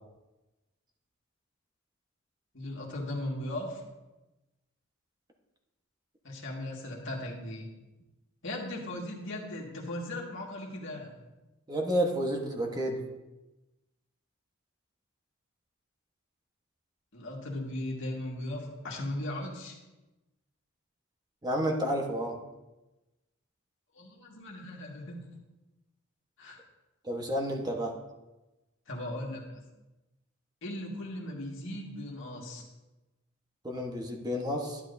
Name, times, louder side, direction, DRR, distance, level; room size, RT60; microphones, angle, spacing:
voice 1, 2.5-3.8 6.2-7.7 8.4-11.1 17.1-19.8 23.9-25.3 26.4-26.6 28.9-29.6 30.6-32.6, left 1 dB, 65° left, -1 dB, 1.8 m, -37 dB
voice 2, 11.7-13.0 21.4-22.4 27.0-27.9 33.6-34.8, equal, 20° right, 1 dB, 1.1 m, -30 dB
11.0 x 10.5 x 2.7 m, 1.0 s
head